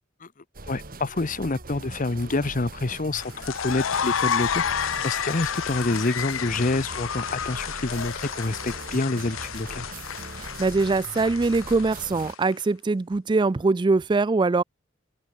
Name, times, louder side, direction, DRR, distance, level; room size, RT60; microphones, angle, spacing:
sound 1, 0.5-12.3, right 2 dB, 45° right, 2.1 m, -41 dB
voice 1, 0.7-9.9, left 2 dB, 40° left, 0.9 m, -27 dB
sound 2, 3.2-12.5, left 8 dB, 85° left, 0.7 m, -31 dB
voice 2, 10.4-14.6, right 3 dB, 25° right, 0.4 m, -23 dB
open air
head